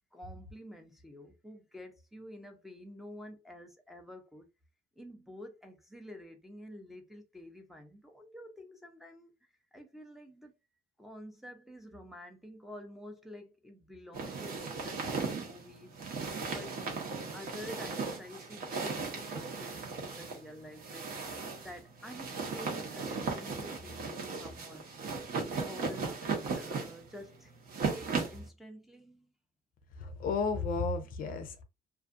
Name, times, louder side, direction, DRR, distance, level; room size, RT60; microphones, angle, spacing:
voice 1, 0.1-4.5 5.0-9.3 9.7-10.5 11.0-16.0 16.5-16.8 17.3-24.9 25.6-27.5 27.8-29.3, left 1 dB, ahead, 0.6 m, -49 dB
sound 1, 14.1-28.5, right 4 dB, 60° right, 1.0 m, -37 dB
voice 2, 30.0-31.6, left 4 dB, 55° left, 0.5 m, -33 dB
2.5 x 2.4 x 2.4 m
cardioid pair, 110°, 17 cm